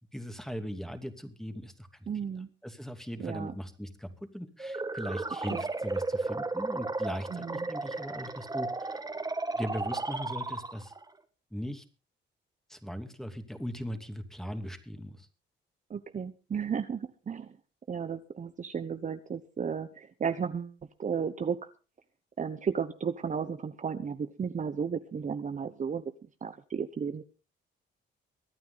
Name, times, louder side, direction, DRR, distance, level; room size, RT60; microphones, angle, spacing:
voice 1, 0.1-1.9 2.6-4.1 4.3-9.0 9.6-10.9 11.5-11.8 12.7-15.3, equal, ahead, 7 dB, 2.6 m, -39 dB
voice 2, 2.1-2.5 3.2-3.5 5.5-5.6 7.3-7.7 15.9-17.5 17.9-20.7 21.0-21.6 22.4-26.0 26.4-27.2, right 6 dB, 40° right, 9 dB, 1.1 m, -34 dB
sound 1, 4.6-11.1, right 3 dB, 20° right, 1.9 m, -34 dB
23.5 x 9.4 x 4.1 m, 0.35 s
cardioid pair, 90°, 20 cm